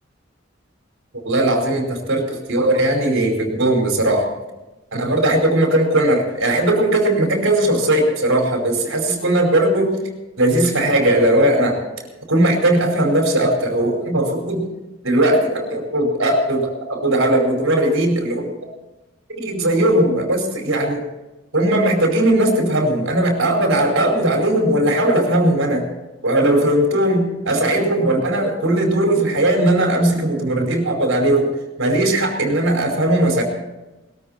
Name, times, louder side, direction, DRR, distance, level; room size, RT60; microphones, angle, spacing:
voice 1, 1.2-4.3 4.9-10.0 10.4-11.8 12.3-14.7 15.0-18.5 19.4-21.0 21.5-25.8 26.2-31.5 31.8-33.4, right 1 dB, 80° right, 2 dB, 4.9 m, -18 dB
21.0 x 13.5 x 4.4 m, 1.0 s
head